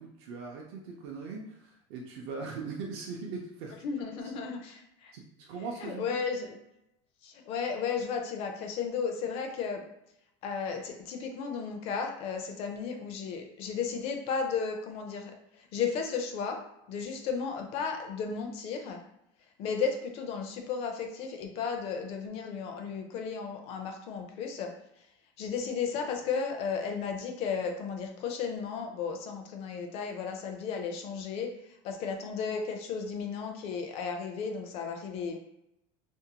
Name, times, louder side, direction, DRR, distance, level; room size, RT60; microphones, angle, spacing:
voice 1, 0.0-3.8 5.1-6.2, right 4 dB, 65° right, -1 dB, 0.5 m, -40 dB
voice 2, 3.8-5.1 5.8-6.6 7.2-9.8 10.4-16.6 16.9-19.0 19.6-24.7 25.4-31.5 31.8-35.4, left 6 dB, 45° left, 3 dB, 0.4 m, -34 dB
2.6 x 2.1 x 2.8 m, 0.84 s
supercardioid pair, 155°, 15 cm